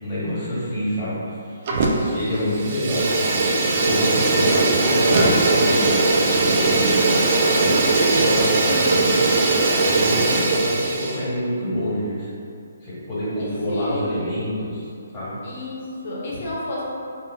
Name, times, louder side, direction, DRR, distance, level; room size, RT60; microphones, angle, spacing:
voice 1, 0.0-3.0 3.8-6.0 6.6-7.0 7.5-8.9 9.9-12.3 12.8-14.9 15.1-15.4, equal, 15° left, -12 dB, 1.4 m, -27 dB
Fire, 1.7-2.2 2.5-11.2, right 3 dB, 40° right, 0.3 m, -19 dB
voice 2, 4.2-4.7 13.4-14.3 15.4-16.8, left 1 dB, 45° left, -5 dB, 0.7 m, -31 dB
3.7 x 2.1 x 2.3 m, 2.4 s
figure-of-eight pair, 135°, 0 cm